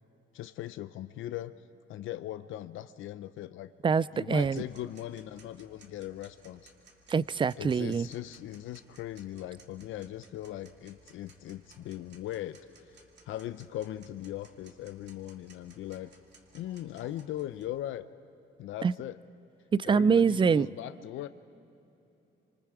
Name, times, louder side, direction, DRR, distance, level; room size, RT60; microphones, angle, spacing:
voice 1, 0.3-1.6 1.9-3.7 4.1-6.7 7.6-12.6 13.3-16.1 16.5-18.0 18.6-19.2 19.9-21.3, left 13 dB, 80° left, 12 dB, 0.6 m, -39 dB
voice 2, 3.8-4.6 7.1-8.1 18.8-18.9 19.7-20.7, right 5 dB, 25° right, 20 dB, 0.4 m, -25 dB
Tick-tock, 4.4-17.6, right 3 dB, 60° right, 2.6 m, -60 dB
26.0 x 25.0 x 4.9 m, 3.0 s
cardioid pair, 90°, 20 cm